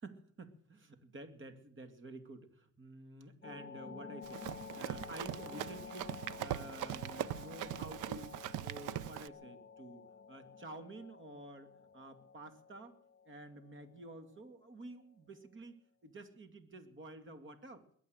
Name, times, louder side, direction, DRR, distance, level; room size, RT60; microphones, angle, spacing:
voice 1, 0.0-8.4 8.6-10.0 10.3-13.0 13.3-17.8, right 2 dB, 40° right, 9 dB, 2.5 m, -51 dB
sound 1, 3.4-14.9, left 6 dB, 35° left, 1.3 m, -51 dB
Run, 4.2-9.3, right 13 dB, 85° right, 0.6 m, -41 dB
21.5 x 8.5 x 7.9 m, 0.62 s
cardioid pair, 90°, 30 cm